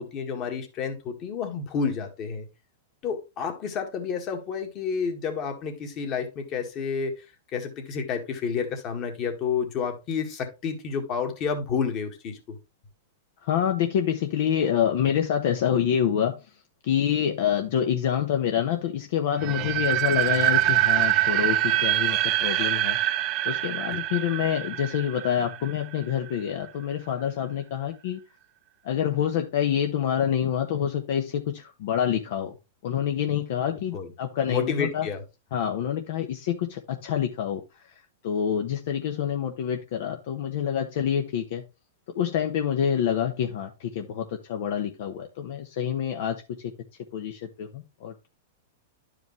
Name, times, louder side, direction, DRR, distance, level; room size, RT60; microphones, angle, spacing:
voice 1, 0.0-2.5 3.0-7.1 7.5-12.6 33.7-34.1 34.5-35.2, left 6 dB, 35° left, 1.7 m, -30 dB
voice 2, 13.4-16.4 16.8-23.0 23.4-28.2 28.8-32.5 32.8-35.1 35.5-37.6 38.2-41.6 42.1-46.4 47.1-48.3, left 9 dB, 60° left, 0.9 m, -27 dB
sound 1, 19.4-26.3, right 14 dB, 35° right, 0.5 m, -25 dB
10.5 x 5.0 x 3.1 m
hypercardioid pair, 140°, 0 cm